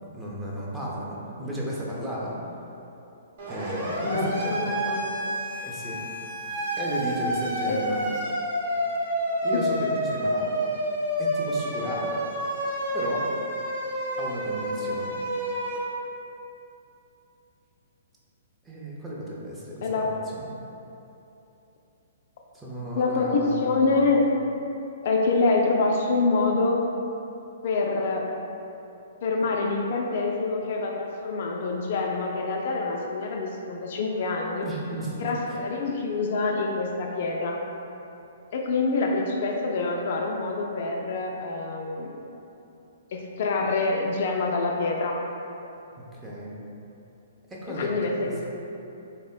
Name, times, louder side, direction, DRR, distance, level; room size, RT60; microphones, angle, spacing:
voice 1, 0.1-2.4 3.5-4.7 5.6-6.0 6.8-8.0 9.4-10.7 11.2-12.2 12.9-13.3 14.2-15.2 18.6-20.5 22.5-24.0 34.6-35.6 46.1-46.6 47.5-48.3, right 1 dB, 10° right, -6 dB, 0.6 m, -34 dB
Siren, 3.4-15.8, equal, 55° right, 0.9 m, -29 dB
voice 2, 4.0-5.4 7.7-7.8 19.8-20.2 23.0-24.5 25.0-26.9 27.6-28.3 29.2-34.7 35.2-37.6 38.5-42.2 43.1-45.2 47.7-48.5, left 3 dB, 55° left, 0 dB, 0.3 m, -26 dB
3.5 x 2.1 x 3.7 m, 2.9 s
figure-of-eight pair, 120°, 0 cm